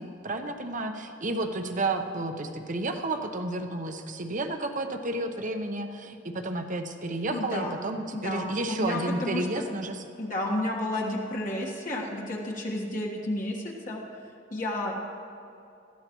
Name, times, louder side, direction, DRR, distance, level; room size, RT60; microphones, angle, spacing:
voice 1, 0.0-10.0, right 2 dB, 45° right, 6 dB, 0.9 m, -31 dB
voice 2, 7.3-7.8 8.1-9.7 10.2-14.0 14.5-15.0, left 1 dB, 45° left, -2 dB, 1.5 m, -31 dB
19.5 x 14.0 x 3.1 m, 2.6 s
head